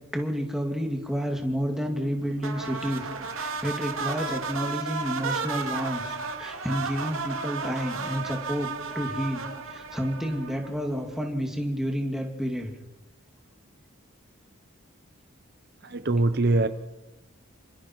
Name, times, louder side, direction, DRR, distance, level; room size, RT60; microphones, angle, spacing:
voice 1, 0.1-3.0 3.3-8.7 8.9-12.7, equal, ahead, 1 dB, 2.6 m, -30 dB
sound 1, 2.4-10.9, right 4 dB, 75° right, 2.6 m, -33 dB
voice 2, 15.8-16.7, right 2 dB, 50° right, 10 dB, 0.9 m, -23 dB
28.0 x 26.0 x 4.7 m, 0.96 s
head